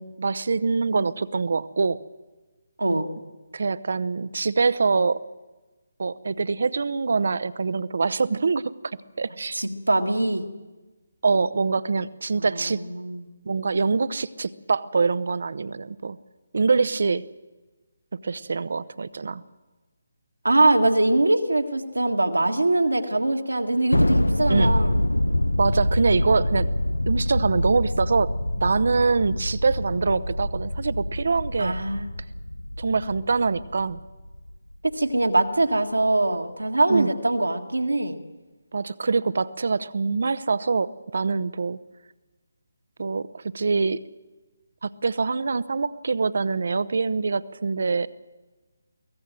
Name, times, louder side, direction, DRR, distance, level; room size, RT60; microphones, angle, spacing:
voice 1, 0.0-2.0 3.5-5.2 6.0-8.7 9.2-9.6 11.2-12.8 13.5-16.2 16.5-17.2 18.2-19.4 24.5-24.7 25.6-26.7 27.1-31.7 32.8-34.0 36.9-37.1 38.7-41.8 43.0-44.0 44.8-48.1, right 4 dB, 60° right, 16 dB, 0.8 m, -24 dB
voice 2, 9.5-10.4 12.3-13.3 20.4-25.2 31.6-32.1 34.8-38.2, right 2 dB, 85° right, 3 dB, 1.9 m, -23 dB
Thunder, 23.9-34.6, left 1 dB, 90° left, 0.6 m, -25 dB
24.0 x 17.0 x 7.6 m, 1.2 s
figure-of-eight pair, 150°, 0 cm